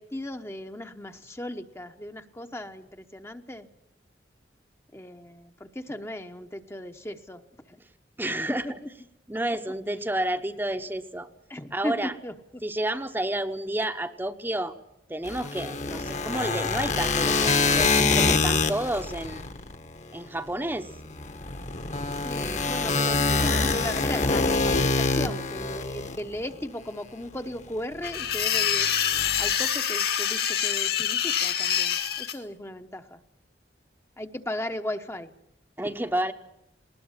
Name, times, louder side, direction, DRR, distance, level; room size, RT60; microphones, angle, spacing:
voice 1, 0.0-3.7 4.9-7.4 7.7-7.8 8.5-8.9 11.5-12.6 22.2-28.9 29.4-33.2 34.2-35.3 35.8-35.9, left 1 dB, 15° left, 7 dB, 1.0 m, -37 dB
voice 2, 8.2-8.8 9.3-11.3 11.7-12.1 12.6-14.7 15.1-19.4 20.1-20.9 35.8-36.3, right 1 dB, 10° right, 7 dB, 0.9 m, -30 dB
sound 1, 15.2-20.0 20.8-26.6 27.9-28.4 28.7-29.5, left 3 dB, 40° left, 1.4 m, -25 dB
sound 2, 28.0-32.3, left 9 dB, 55° left, 1.9 m, -26 dB
20.0 x 19.5 x 9.6 m, 0.80 s
head